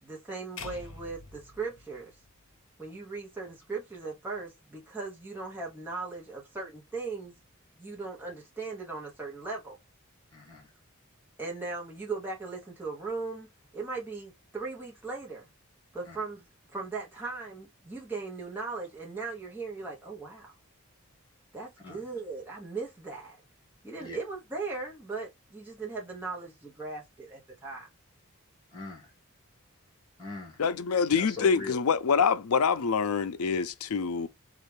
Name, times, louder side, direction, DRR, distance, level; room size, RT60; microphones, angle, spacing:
voice 1, 0.0-2.1 2.8-7.4 7.8-9.8 11.4-15.5 15.9-16.4 16.7-20.6 21.5-23.4 23.8-27.9, right 4 dB, 10° right, 1.0 m, -38 dB
sound 1, 0.6-2.8, left 4 dB, 60° left, 0.8 m, -46 dB
voice 2, 10.3-10.7 16.0-16.2 21.8-22.0 24.0-24.2 28.7-29.1 30.2-30.6 31.1-31.8, left 3 dB, 20° left, 1.5 m, -41 dB
voice 3, 30.6-34.3, left 6 dB, 90° left, 0.5 m, -26 dB
4.0 x 2.5 x 3.3 m
head